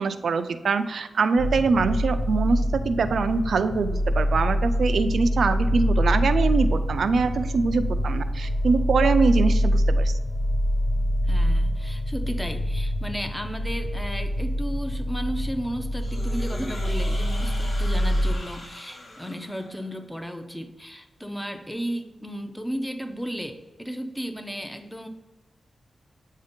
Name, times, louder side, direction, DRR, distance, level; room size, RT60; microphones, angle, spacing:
voice 1, 0.0-10.1, right 4 dB, 70° right, 10 dB, 0.4 m, -23 dB
sound 1, 1.4-18.4, equal, 80° left, 0.7 m, -25 dB
voice 2, 11.3-25.1, equal, 5° left, 6 dB, 0.5 m, -34 dB
sound 2, 16.0-20.0, left 1 dB, 40° left, 0.9 m, -41 dB
7.9 x 2.7 x 5.1 m, 1.1 s
wide cardioid pair, 160°, 0 cm